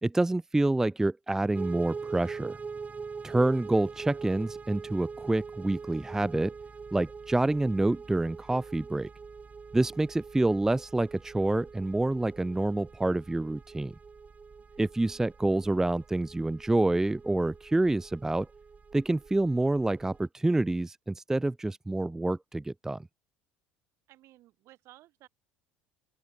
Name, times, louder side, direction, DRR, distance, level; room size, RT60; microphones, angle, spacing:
voice 1, 0.0-2.6 3.2-6.5 6.9-9.1 9.7-13.9 14.8-18.5 18.9-23.1, right 2 dB, 10° right, 0.4 m, -27 dB
sound 1, 1.5-20.3, right 5 dB, 25° right, 3.6 m, -44 dB
voice 2, 24.1-25.3, right 16 dB, 55° right, 4.7 m, -57 dB
open air
figure-of-eight pair, 65°, 6 cm